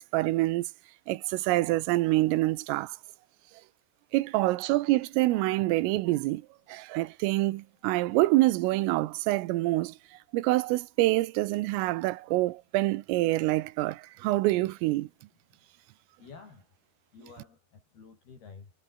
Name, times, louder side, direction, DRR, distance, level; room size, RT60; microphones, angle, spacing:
voice 1, 0.1-0.7 1.1-3.0 4.1-6.4 6.7-10.0 10.3-15.1, right 18 dB, 90° right, 3.5 m, -26 dB
voice 2, 16.2-16.7 17.1-18.7, left 5 dB, 50° left, 7.2 m, -50 dB
omnidirectional pair, 5.9 m